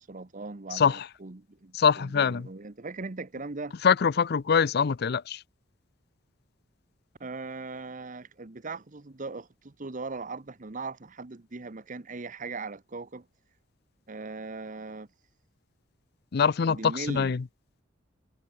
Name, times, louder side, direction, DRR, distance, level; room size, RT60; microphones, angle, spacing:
voice 1, 0.0-3.7 7.2-13.3 14.1-15.1 16.7-17.3, right 3 dB, 40° right, 1.0 m, -39 dB
voice 2, 0.7-1.1 1.7-2.5 3.8-5.4 16.3-17.4, left 6 dB, 55° left, 0.5 m, -24 dB
head